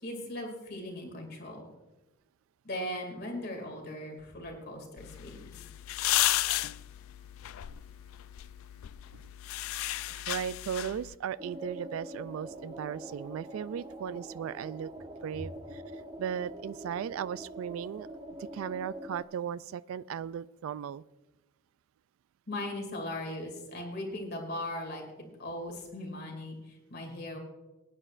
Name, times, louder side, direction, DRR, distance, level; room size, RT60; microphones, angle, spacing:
voice 1, 0.0-1.7 2.6-5.5 22.5-27.4, left 1 dB, 50° left, 2 dB, 2.4 m, -39 dB
sound 1, 5.0-11.2, left 15 dB, 85° left, 0.3 m, -33 dB
voice 2, 10.1-14.9 15.2-18.1 18.5-21.0, right 8 dB, 80° right, 17 dB, 0.3 m, -37 dB
sound 2, 11.4-19.2, right 1 dB, 20° right, 0.6 m, -44 dB
20.5 x 9.9 x 2.5 m, 1.1 s
head